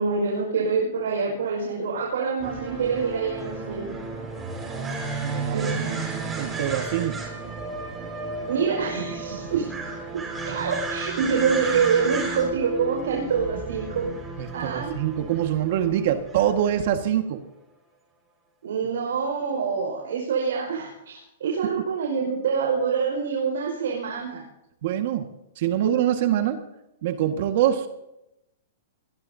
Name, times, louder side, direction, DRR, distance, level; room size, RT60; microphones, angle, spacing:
voice 1, 0.0-3.9 5.5-5.8 8.5-9.7 10.4-14.1 14.5-14.9 18.6-24.4, right 5 dB, 80° right, -1 dB, 5.4 m, -26 dB
sound 1, 2.4-17.0, right 3 dB, 10° right, 5.1 m, -33 dB
voice 2, 5.2-6.1 6.4-7.3 14.4-17.4 24.8-25.3 25.6-26.6 27.0-27.9, right 10 dB, 55° right, 6 dB, 1.8 m, -24 dB
24.0 x 21.5 x 2.8 m, 0.87 s
hypercardioid pair, 155°, 0 cm